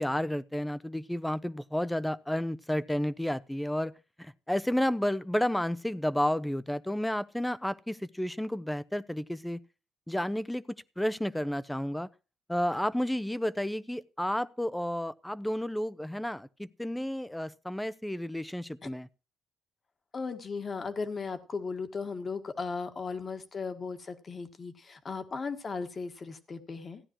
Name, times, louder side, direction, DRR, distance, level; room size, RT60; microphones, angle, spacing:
voice 1, 0.0-3.9 4.2-9.6 10.1-10.6 11.0-12.1 12.5-19.1, left 1 dB, 5° left, 0.6 m, -31 dB
voice 2, 20.1-27.0, left 4 dB, 40° left, 1.5 m, -36 dB
15.5 x 9.9 x 3.0 m
cardioid pair, 90°, 0 cm